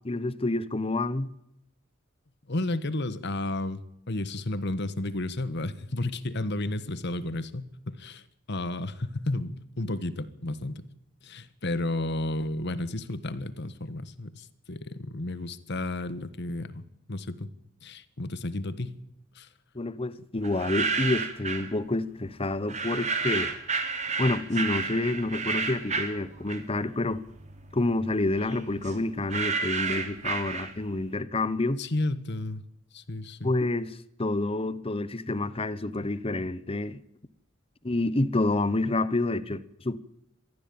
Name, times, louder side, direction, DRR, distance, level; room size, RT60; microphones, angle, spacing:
voice 1, 0.0-1.3 19.7-23.5 24.2-27.2 27.7-31.8 33.4-33.9 34.2-37.0 37.8-40.0, left 2 dB, 30° left, 1.0 m, -28 dB
voice 2, 2.5-10.8 11.2-16.8 17.1-17.5 17.8-19.0 19.3-19.5 31.8-32.6 32.9-33.5, left 2 dB, 60° left, 1.5 m, -32 dB
sound 1, 20.4-21.7 22.7-26.9 27.3-31.0, right 4 dB, 35° right, 3.0 m, -31 dB
22.5 x 14.5 x 8.7 m
head